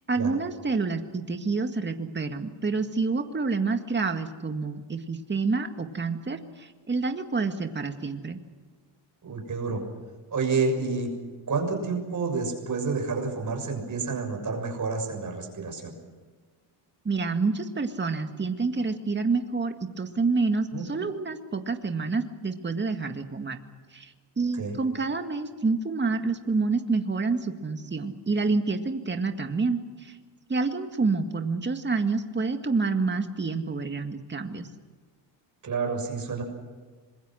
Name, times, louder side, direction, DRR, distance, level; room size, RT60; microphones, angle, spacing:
voice 1, 0.1-8.4 17.1-23.6 23.9-30.2 30.5-34.7, right 4 dB, 25° right, 6 dB, 2.0 m, -28 dB
voice 2, 9.2-9.8 10.3-11.1 11.5-15.9 20.7-20.9 24.6-24.7 35.6-36.4, right 4 dB, 40° right, 3 dB, 6.8 m, -29 dB
26.0 x 22.0 x 6.4 m, 1.4 s
cardioid pair, 100°, 47 cm